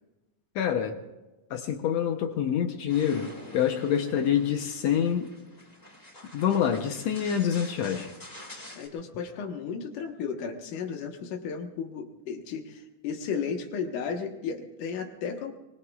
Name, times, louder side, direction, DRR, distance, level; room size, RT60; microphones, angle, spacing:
voice 1, 0.5-1.0 1.5-5.3 6.3-8.1, left 9 dB, 70° left, 5 dB, 1.8 m, -26 dB
sound 1, 2.9-8.9, left 1 dB, 15° left, 2.4 m, -47 dB
voice 2, 8.7-15.5, left 6 dB, 85° left, 4 dB, 2.8 m, -34 dB
24.0 x 23.0 x 2.4 m, 1.1 s
omnidirectional pair, 3.6 m